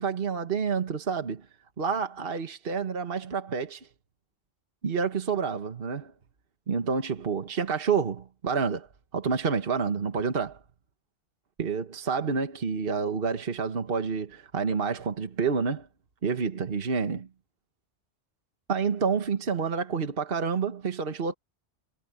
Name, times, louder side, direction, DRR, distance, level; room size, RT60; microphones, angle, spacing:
voice 1, 0.0-1.4 1.8-3.9 4.8-6.1 6.7-8.9 9.1-10.6 11.6-15.9 16.2-17.3 18.7-21.3, right 5 dB, 55° right, 1.5 m, -28 dB
omnidirectional pair, 1.2 m